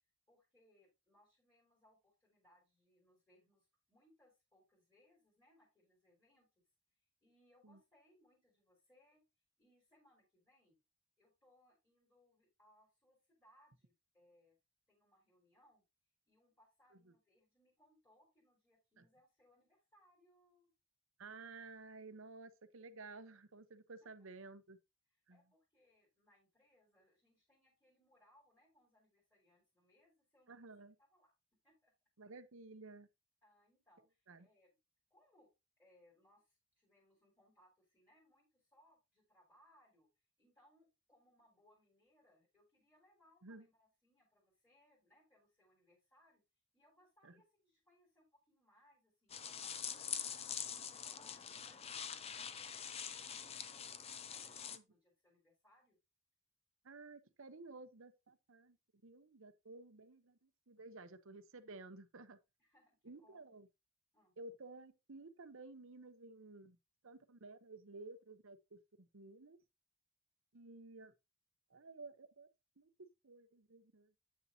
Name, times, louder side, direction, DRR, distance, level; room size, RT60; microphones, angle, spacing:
voice 1, 0.3-6.5 6.9-9.2 9.6-10.8 11.2-14.6 14.9-15.8 16.3-20.7 24.2-24.3 25.1-31.3 31.6-31.9 33.4-34.8 35.1-35.5 35.8-40.1 40.4-46.4 46.7-51.9 52.5-56.0 62.6-63.5 64.1-64.3, left 1 dB, 10° left, 3.4 m, -72 dB
voice 2, 21.2-24.8 25.3-25.4 30.5-30.9 32.2-33.1 34.3-34.5 43.4-43.7 47.2-47.3 54.7-54.8 56.8-58.8 59.0-62.4 63.0-63.7 64.4-66.8 67.0-69.6 70.5-71.1 71.7-72.5 72.8-72.9 73.2-74.1, right 3 dB, 65° right, 0.9 m, -54 dB
sound 1, 49.3-54.8, left 8 dB, 30° left, 0.5 m, -45 dB
8.7 x 7.0 x 2.8 m
head